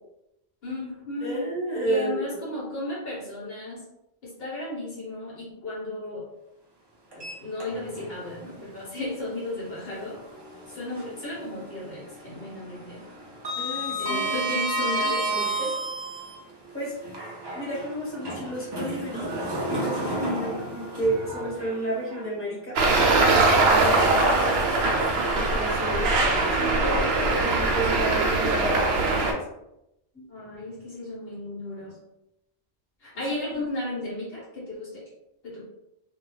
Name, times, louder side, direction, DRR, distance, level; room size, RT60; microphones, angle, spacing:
voice 1, 0.6-1.4 1.8-3.8 4.2-6.3 7.1-10.2 10.7-13.0 14.0-15.7 20.1-20.9 30.3-32.0 33.0-35.0 35.4-35.6, left 2 dB, 65° left, -5 dB, 1.0 m, -34 dB
voice 2, 1.2-2.3 13.6-14.4 14.9-15.5 16.7-16.9 17.5-19.4 19.7-20.3 20.7-22.8 23.1-24.4 25.3-26.2 26.5-29.4 30.1-30.3, right 1 dB, 10° left, -6 dB, 1.0 m, -32 dB
Sliding door, 7.1-8.1 8.5-8.6 10.3-11.3 11.6-12.0 12.2-16.3 17.0-22.2, right 1 dB, 40° right, 0.3 m, -31 dB
Traffic noise roadway noise, 22.8-29.3, right 3 dB, 70° right, 0.7 m, -21 dB
2.3 x 2.2 x 3.1 m, 0.85 s
omnidirectional pair, 1.1 m